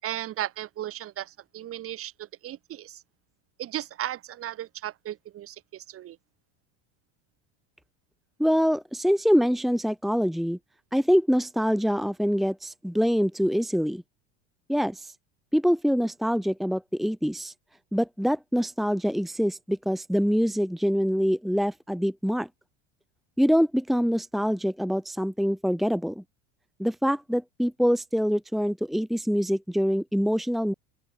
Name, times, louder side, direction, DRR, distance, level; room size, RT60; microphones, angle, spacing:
voice 1, 0.0-3.0 3.6-6.2, right 12 dB, 45° right, 7.5 m, -36 dB
voice 2, 8.4-10.6 10.9-14.0 14.7-15.1 15.5-17.5 17.9-22.5 23.4-26.2 26.8-30.7, equal, ahead, 1.3 m, -25 dB
open air
supercardioid pair, 120°, 32 cm